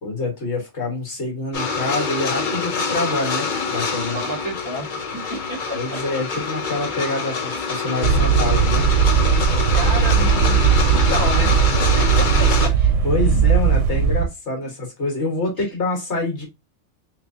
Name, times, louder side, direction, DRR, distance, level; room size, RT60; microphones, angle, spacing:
voice 1, 0.0-4.2 5.7-8.9 13.0-16.5, left 2 dB, 65° left, 1.6 m, -26 dB
sound 1, 1.5-12.7, left 4 dB, 45° left, 0.8 m, -25 dB
voice 2, 4.1-6.0 9.5-12.9 13.2-13.5 14.6-14.7, equal, 15° right, 1.2 m, -31 dB
sound 2, 8.0-14.3, right 7 dB, 85° right, 0.9 m, -18 dB
3.5 x 3.1 x 2.5 m
omnidirectional pair, 1.3 m